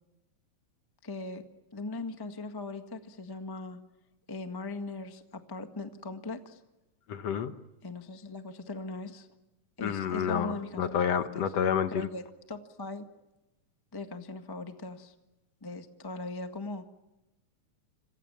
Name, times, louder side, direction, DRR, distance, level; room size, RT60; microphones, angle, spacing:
voice 1, 1.0-1.4 1.7-3.8 4.3-6.6 7.8-9.3 9.8-11.5 11.9-13.0 13.9-15.1 15.6-16.8, left 3 dB, 15° left, 7 dB, 0.8 m, -39 dB
voice 2, 7.1-7.5 9.8-12.1, left 8 dB, 65° left, 10 dB, 2.0 m, -29 dB
27.0 x 27.0 x 7.3 m, 0.99 s
omnidirectional pair, 3.5 m